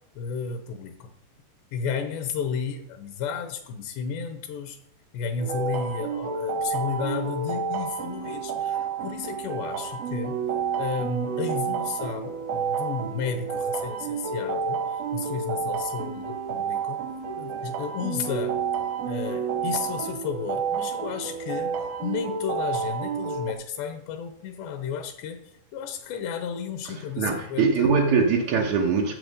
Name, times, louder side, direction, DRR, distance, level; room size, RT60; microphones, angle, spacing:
voice 1, 0.2-1.1 1.7-4.8 5.1-10.4 10.8-17.0 17.4-18.6 19.1-25.4 25.7-27.9, left 6 dB, 80° left, 7 dB, 3.1 m, -33 dB
sound 1, 5.4-23.5, right 6 dB, 70° right, 1.6 m, -30 dB
voice 2, 27.2-29.1, right 5 dB, 90° right, -1 dB, 1.6 m, -22 dB
14.5 x 7.3 x 5.4 m, 0.75 s
omnidirectional pair, 5.1 m